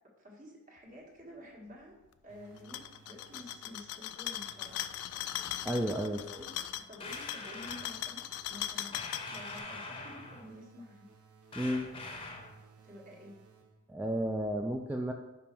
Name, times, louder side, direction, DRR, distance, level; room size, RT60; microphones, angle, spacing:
voice 1, 0.2-2.0 2.2-4.8 5.9-11.1 12.8-13.4, left 1 dB, 40° right, -1 dB, 1.4 m, -51 dB
sound 1, 2.3-4.0 4.4-6.9 7.6-14.0, right 5 dB, 80° right, 0.9 m, -60 dB
sound 2, 2.6-9.6, left 12 dB, 80° left, 0.4 m, -39 dB
voice 2, 5.6-6.2 11.6-11.9 13.9-15.1, equal, 5° right, 1 dB, 0.3 m, -32 dB
sound 3, 7.0-7.9 8.9-10.5 11.5-12.6, left 3 dB, 25° left, 0.7 m, -43 dB
5.5 x 5.0 x 4.4 m, 1.1 s
head